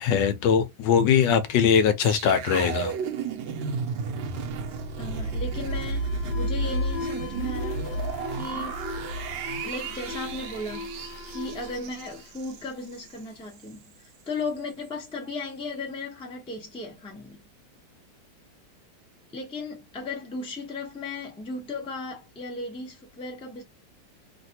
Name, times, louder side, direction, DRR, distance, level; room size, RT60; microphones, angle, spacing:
voice 1, 0.0-2.9, left 7 dB, 75° left, 1.2 m, -21 dB
sound 1, 2.0-13.2 13.5-13.7, right 3 dB, 85° right, 1.4 m, -32 dB
Alarm, 4.4-13.0, left 2 dB, 40° left, 0.9 m, -40 dB
voice 2, 5.0-7.8 8.4-8.8 9.6-10.9 11.3-17.4 19.3-23.6, left 3 dB, 5° left, 0.5 m, -36 dB
3.2 x 2.5 x 2.7 m
omnidirectional pair, 2.0 m